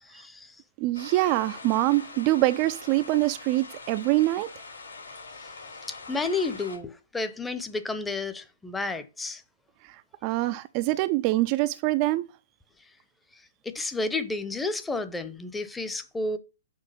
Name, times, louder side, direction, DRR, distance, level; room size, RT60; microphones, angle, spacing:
voice 1, 0.0-0.6 5.4-5.5 5.9-9.4 13.6-16.4, left 3 dB, 10° left, 0.8 m, -31 dB
voice 2, 0.8-4.5 9.8-12.3, right 18 dB, 35° right, 0.4 m, -24 dB
sound 1, 0.9-6.8, left 4 dB, 75° left, 3.6 m, -43 dB
6.3 x 4.6 x 5.7 m
figure-of-eight pair, 115°, 0 cm